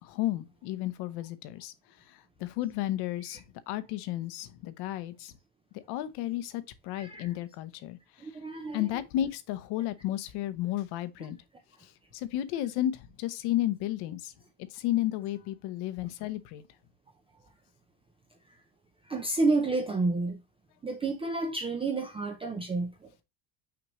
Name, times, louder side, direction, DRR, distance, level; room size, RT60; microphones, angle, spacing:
voice 1, 0.0-1.7 2.1-5.4 5.7-8.3 8.7-11.4 11.8-14.3 14.7-16.6, left 13 dB, 55° left, 0.9 m, -33 dB
voice 2, 6.9-7.3 8.2-8.9 19.1-20.4 20.8-22.9, right 3 dB, 10° right, 0.5 m, -30 dB
6.0 x 5.1 x 3.1 m
cardioid pair, 140°, 46 cm